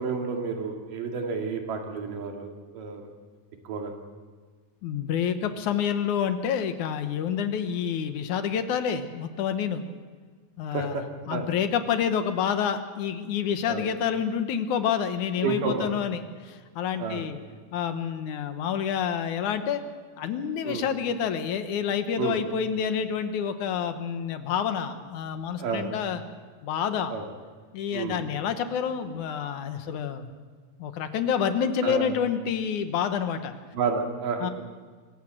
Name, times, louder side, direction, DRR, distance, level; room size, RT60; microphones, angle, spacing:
voice 1, 0.0-3.0 3.7-3.9 10.7-11.0 11.3-11.4 13.7-13.8 15.4-15.9 17.0-17.2 20.6-20.8 22.2-22.4 25.6-25.9 27.1-27.2 27.9-28.2 31.8-32.1 33.7-34.5, right 5 dB, 80° right, 2 dB, 3.9 m, -30 dB
voice 2, 4.8-9.8 10.6-11.0 11.3-17.4 17.7-19.8 20.2-26.2 26.6-27.1 27.7-30.3 30.8-33.5 34.4-34.5, left 8 dB, 70° left, 9 dB, 2.4 m, -28 dB
25.0 x 15.0 x 7.8 m, 1.5 s
omnidirectional pair, 3.8 m